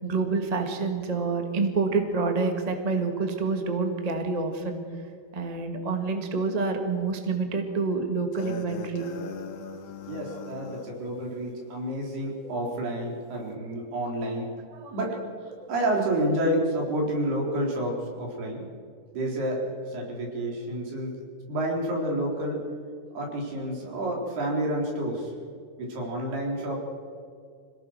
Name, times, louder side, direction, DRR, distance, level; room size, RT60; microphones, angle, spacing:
voice 1, 0.0-4.8 5.3-9.0 14.7-15.0 15.5-15.7, right 4 dB, 20° right, 5 dB, 1.0 m, -28 dB
sound 1, 8.3-11.0, left 6 dB, 85° left, 3.7 m, -39 dB
voice 2, 10.1-14.5 14.9-15.2 15.7-18.7 19.1-21.2 21.5-22.6 23.1-25.3 25.8-26.8, right 1 dB, 80° right, -1 dB, 6.1 m, -29 dB
26.5 x 17.5 x 6.5 m, 2.2 s
omnidirectional pair, 4.5 m